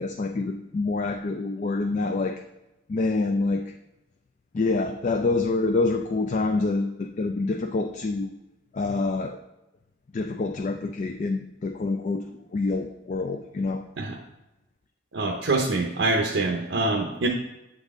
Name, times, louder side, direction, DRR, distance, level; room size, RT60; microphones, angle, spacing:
voice 1, 0.0-2.3 2.9-3.6 4.5-8.3 8.7-9.4 10.1-12.2 12.5-13.8, left 3 dB, 40° left, 5 dB, 0.3 m, -26 dB
voice 2, 15.1-17.3, right 2 dB, 65° right, 1 dB, 0.6 m, -25 dB
8.0 x 4.0 x 3.5 m, 0.95 s
head